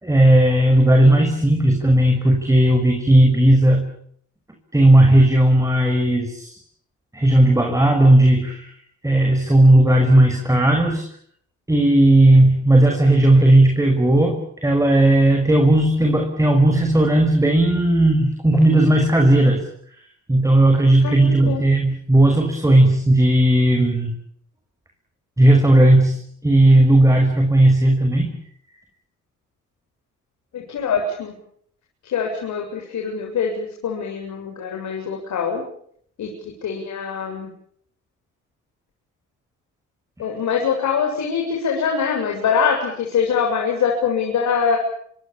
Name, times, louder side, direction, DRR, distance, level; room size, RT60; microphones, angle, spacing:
voice 1, 0.0-3.9 4.7-6.6 7.1-8.7 9.0-11.1 11.7-19.7 20.3-24.1 25.4-28.4, right 1 dB, 10° right, 3 dB, 5.9 m, -15 dB
voice 2, 21.0-21.6 30.5-31.3 32.0-35.6 36.2-37.5 40.2-44.8, left 6 dB, 70° left, 1 dB, 7.5 m, -23 dB
26.5 x 26.0 x 7.2 m, 0.65 s
cardioid pair, 90°, 30 cm